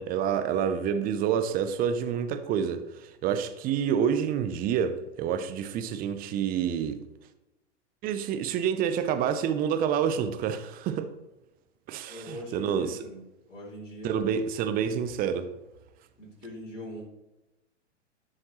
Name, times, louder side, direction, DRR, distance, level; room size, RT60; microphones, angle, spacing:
voice 1, 0.0-7.0 8.0-11.1 11.9-13.0 14.0-15.5, right 8 dB, 25° right, 0.6 m, -28 dB
voice 2, 12.1-13.2 13.5-14.5 14.8-15.2 16.2-17.0, equal, 85° left, 3.2 m, -42 dB
11.5 x 6.5 x 3.1 m
figure-of-eight pair, 105°, 36 cm